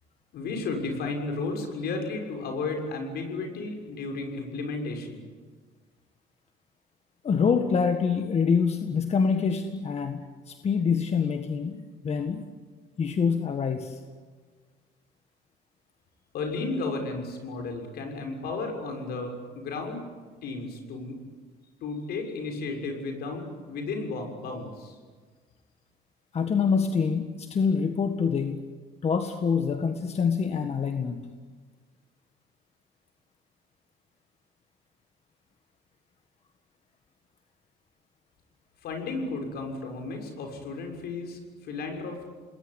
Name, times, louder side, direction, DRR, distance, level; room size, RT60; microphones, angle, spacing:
voice 1, 0.3-5.2 16.3-20.0 20.4-21.2 21.8-24.9 38.8-42.2, left 3 dB, 70° left, 3 dB, 6.7 m, -33 dB
voice 2, 7.2-12.4 13.0-14.0 26.3-28.6 29.0-31.3, left 6 dB, 40° left, 6 dB, 1.8 m, -26 dB
28.0 x 20.5 x 9.8 m, 1.5 s
cardioid pair, 110°, 17 cm